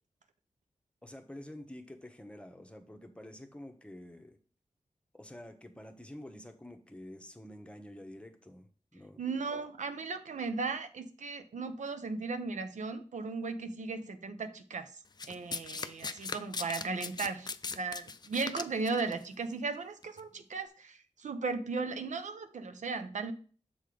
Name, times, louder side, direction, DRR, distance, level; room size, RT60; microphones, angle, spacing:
voice 1, 1.0-4.4 5.1-9.2, left 1 dB, 10° left, 5 dB, 1.0 m, -48 dB
voice 2, 9.2-15.0 15.3-23.3, right 4 dB, 85° right, 9 dB, 0.7 m, -36 dB
Domestic sounds home sounds, 15.2-19.1 20.0-20.2, left 4 dB, 35° left, 0.4 m, -39 dB
7.0 x 3.8 x 4.9 m, 0.41 s
wide cardioid pair, 85°, 12 cm